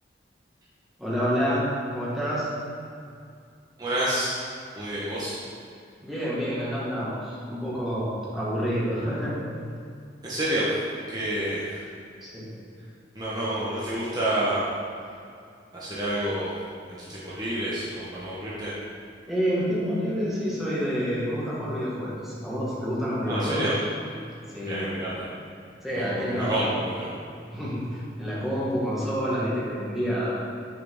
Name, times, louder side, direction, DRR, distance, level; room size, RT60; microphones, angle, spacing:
voice 1, 1.0-1.6 1.9-2.5 6.0-9.4 12.2-12.5 19.3-23.7 24.5-24.9 25.8-26.8 27.5-30.3, equal, ahead, -9 dB, 1.8 m, -28 dB
voice 2, 3.8-4.4 4.7-5.4 10.2-11.9 13.1-14.6 15.7-16.5 16.9-18.7 23.2-23.7 24.7-25.2 25.9-27.1, right 1 dB, 20° right, -9 dB, 1.2 m, -29 dB
7.8 x 6.9 x 3.7 m, 2.4 s
head